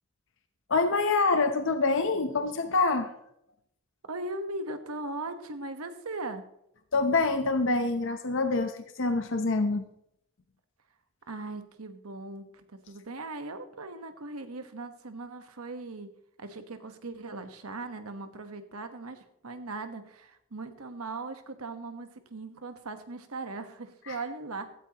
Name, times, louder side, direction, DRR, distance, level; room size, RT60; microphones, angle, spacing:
voice 1, 0.7-3.1 6.9-9.8 24.1-24.2, left 3 dB, 60° left, 7 dB, 0.8 m, -26 dB
voice 2, 4.0-6.5 11.3-16.1 16.4-24.7, right 2 dB, 85° right, 8 dB, 1.2 m, -39 dB
16.0 x 13.0 x 3.0 m, 0.77 s
head